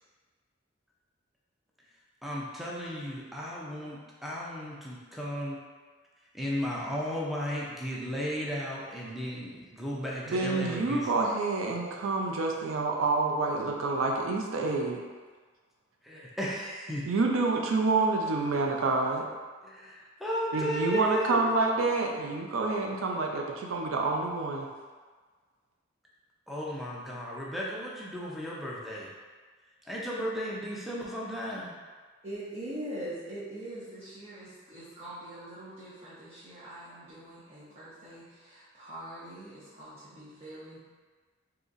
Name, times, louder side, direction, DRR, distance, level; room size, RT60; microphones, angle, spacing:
voice 1, 2.2-5.6 6.3-11.2 16.0-17.1 19.6-21.4 26.5-29.1 29.9-31.7, equal, ahead, -5 dB, 0.5 m, -34 dB
voice 2, 10.3-15.0 17.1-19.2 20.5-24.7, right 3 dB, 90° right, 0 dB, 0.4 m, -28 dB
voice 3, 32.2-40.8, right 1 dB, 30° right, -12 dB, 0.8 m, -43 dB
3.9 x 2.8 x 2.5 m, 1.4 s
head